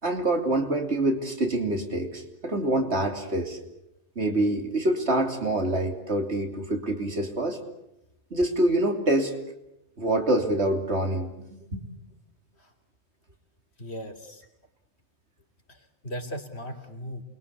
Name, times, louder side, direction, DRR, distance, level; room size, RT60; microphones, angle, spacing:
voice 1, 0.0-3.6 4.1-7.6 8.3-9.3 10.0-11.8, right 1 dB, 75° right, 5 dB, 3.3 m, -26 dB
voice 2, 13.8-14.4 15.7-17.2, equal, 70° left, 5 dB, 3.6 m, -37 dB
28.5 x 22.5 x 8.5 m, 0.89 s
omnidirectional pair, 1.1 m